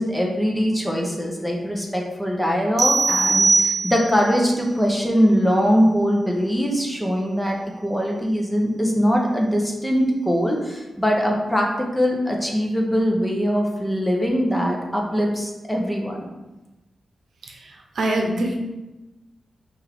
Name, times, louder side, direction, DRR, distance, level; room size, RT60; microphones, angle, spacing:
voice 1, 0.0-7.6 7.8-16.3, equal, 5° left, 0 dB, 0.7 m, -22 dB
sound 1, 2.8-4.3, right 3 dB, 45° right, 0.5 m, -20 dB
voice 2, 17.4-18.5, right 1 dB, 75° right, 1 dB, 0.8 m, -25 dB
5.9 x 2.5 x 3.4 m, 1.0 s
wide cardioid pair, 130°, 0 cm